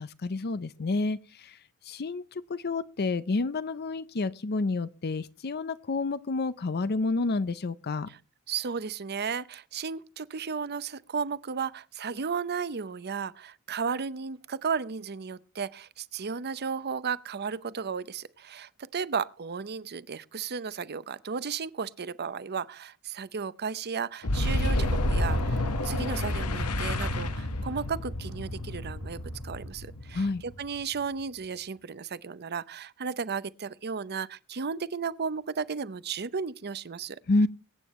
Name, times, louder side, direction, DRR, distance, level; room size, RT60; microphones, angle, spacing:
voice 1, 0.0-1.6 1.8-8.1 30.1-30.4 37.3-37.5, left 3 dB, 45° left, 0.6 m, -29 dB
voice 2, 8.5-37.2, right 6 dB, 45° right, 0.7 m, -34 dB
Boom, 24.2-30.8, left 1 dB, 85° left, 1.6 m, -29 dB
22.5 x 9.1 x 3.1 m
head